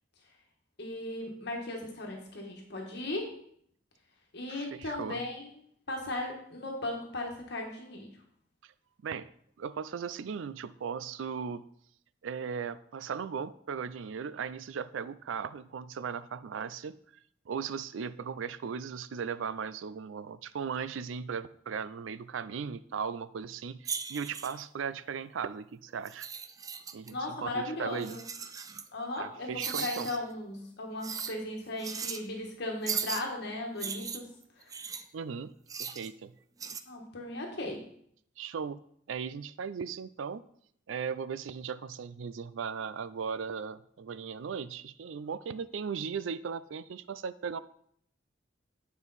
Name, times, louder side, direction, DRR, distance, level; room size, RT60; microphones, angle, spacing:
voice 1, 0.8-3.4 4.3-5.5 5.9-8.2 27.1-28.2 28.9-34.3 34.6-34.7 36.9-37.8, left 2 dB, 60° left, 1 dB, 1.4 m, -37 dB
voice 2, 4.5-5.2 8.6-8.7 9.0-9.3 9.6-11.7 12.2-17.0 17.5-26.3 26.9-28.2 29.2-30.1 35.1-35.5 35.8-36.3 38.4-38.8 39.1-40.4 40.9-47.6, right 6 dB, 90° right, 16 dB, 0.4 m, -37 dB
sound 1, 23.8-24.6 26.0-27.1 28.0-28.9 29.6-30.2 31.0-31.3 31.8-32.2 32.9-33.2 33.8-35.0 35.7-36.1 36.6-36.8, right 6 dB, 20° right, 0.3 m, -37 dB
9.1 x 5.0 x 4.1 m, 0.66 s
head